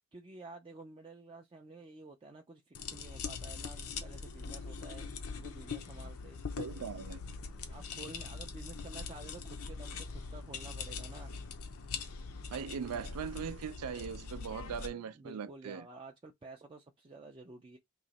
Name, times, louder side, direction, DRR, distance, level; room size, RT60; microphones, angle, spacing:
voice 1, 0.1-6.4 7.2-11.3 14.9-17.8, right 3 dB, 25° right, 0.4 m, -51 dB
sound 1, 2.7-14.9, left 5 dB, 75° left, 0.7 m, -42 dB
voice 2, 6.6-7.2 12.5-15.9, right 6 dB, 90° right, 0.4 m, -40 dB
3.0 x 2.8 x 4.0 m
head